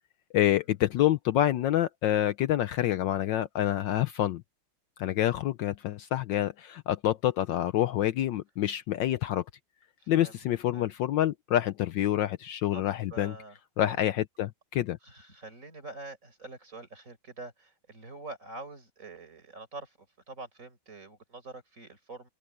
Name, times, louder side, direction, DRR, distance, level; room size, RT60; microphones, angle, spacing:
voice 1, 0.3-4.4 5.0-9.4 10.1-13.3 13.8-15.0, left 12 dB, 75° left, 1.2 m, -27 dB
voice 2, 10.0-10.4 10.7-10.9 12.7-12.8 13.1-14.2 15.0-22.3, right 3 dB, 35° right, 5.6 m, -45 dB
open air
omnidirectional pair, 2.3 m